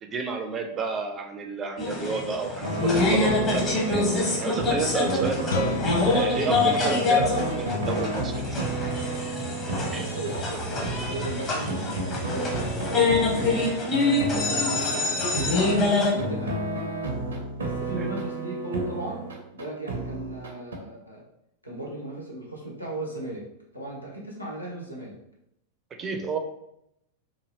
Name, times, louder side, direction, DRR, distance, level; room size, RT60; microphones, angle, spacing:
voice 1, 0.0-4.1 4.4-5.8 6.1-8.7 9.9-10.1 17.9-18.1 26.0-26.4, right 4 dB, 25° right, 4 dB, 0.4 m, -31 dB
sound 1, 1.8-16.1, left 3 dB, 30° left, 0.8 m, -26 dB
sound 2, 2.6-20.8, right 2 dB, 70° right, 0.6 m, -32 dB
voice 2, 5.1-5.4 9.9-13.8 14.2-16.6 17.6-19.3 19.5-21.2 21.6-23.4 23.7-25.1, right 1 dB, 85° left, -3 dB, 0.7 m, -36 dB
Guitar, 5.5-11.0, left 7 dB, 60° left, 0.3 m, -39 dB
3.0 x 2.5 x 2.7 m, 0.80 s
figure-of-eight pair, 90°, 0 cm